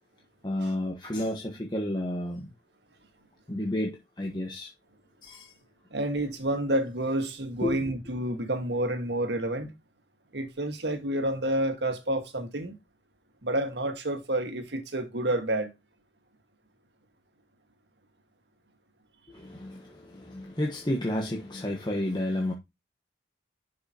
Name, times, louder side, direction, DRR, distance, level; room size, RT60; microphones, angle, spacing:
voice 1, 0.4-2.5 3.5-4.7 5.2-5.5 7.6-7.8 19.3-22.5, left 1 dB, 25° left, 1.3 m, -31 dB
voice 2, 5.9-9.7 10.3-12.7 13.4-15.7, right 1 dB, 75° right, 1.7 m, -29 dB
11.0 x 5.9 x 2.9 m
head